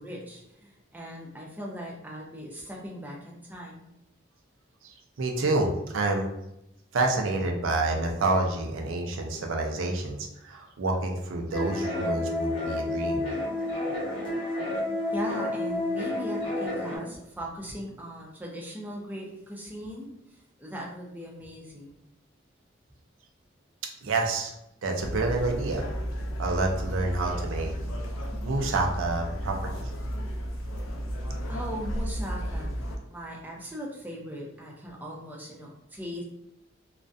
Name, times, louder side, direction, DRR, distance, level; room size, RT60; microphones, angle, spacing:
voice 1, 0.0-3.9 15.1-22.0 31.5-36.2, equal, 10° right, -3 dB, 0.4 m, -39 dB
voice 2, 5.2-6.3 6.9-13.3 24.0-24.5 24.8-25.9 26.4-27.7 28.4-29.9, right 2 dB, 85° right, 2 dB, 0.4 m, -28 dB
sound 1, 11.5-17.0, left 1 dB, 25° left, 0.9 m, -30 dB
sound 2, 25.0-33.0, equal, 85° left, 0.4 m, -33 dB
2.3 x 2.1 x 2.5 m, 0.85 s
head